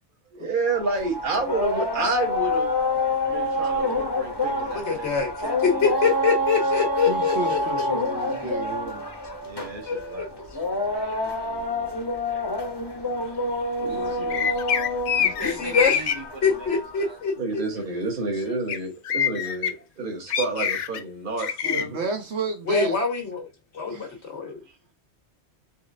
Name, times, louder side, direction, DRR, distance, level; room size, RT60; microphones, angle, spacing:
voice 1, 0.3-2.7 3.2-5.6 5.9-6.0 9.4-10.3 12.9-13.3 13.8-15.2 17.4-22.0 24.4-24.6, right 3 dB, 50° right, 1.2 m, -30 dB
sound 1, 0.7-17.1, left 1 dB, 25° left, 0.7 m, -27 dB
voice 2, 4.7-7.6 9.3-9.4 9.9-10.4 15.4-16.0 16.4-17.3 21.6-21.8 22.7-23.5 23.7-24.6, left 5 dB, 90° left, 1.6 m, -25 dB
voice 3, 7.1-9.1 21.6-23.0 23.9-24.2, right 3 dB, 75° right, 1.4 m, -31 dB
voice 4, 10.9-12.0 15.1-17.2, right 1 dB, 25° right, 1.0 m, -40 dB
sound 2, 14.3-16.1 18.7-18.8 19.1-19.7 20.3-21.0 21.4-21.8, left 8 dB, 60° left, 0.5 m, -24 dB
4.3 x 3.2 x 2.5 m
omnidirectional pair, 1.1 m